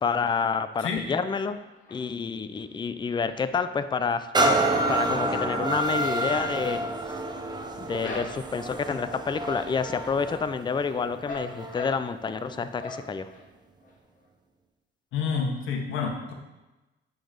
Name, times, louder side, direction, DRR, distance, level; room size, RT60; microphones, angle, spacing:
voice 1, 0.0-1.6 1.9-6.8 7.0-7.1 7.9-13.3, left 5 dB, 25° left, 11 dB, 0.4 m, -29 dB
sound 1, 1.5-2.3 2.7-4.1 4.3-8.7 9.2-9.6 10.0-12.4 12.8-13.4 13.8-13.9 14.2-14.3, left 2 dB, 45° left, 2.0 m, -42 dB
sound 2, 4.3-11.9 12.5-12.6, right 2 dB, 20° right, 0.8 m, -28 dB
voice 2, 15.1-16.3, left 5 dB, 85° left, 2 dB, 1.2 m, -28 dB
7.6 x 4.0 x 5.1 m, 1.1 s
cardioid pair, 90°, 20 cm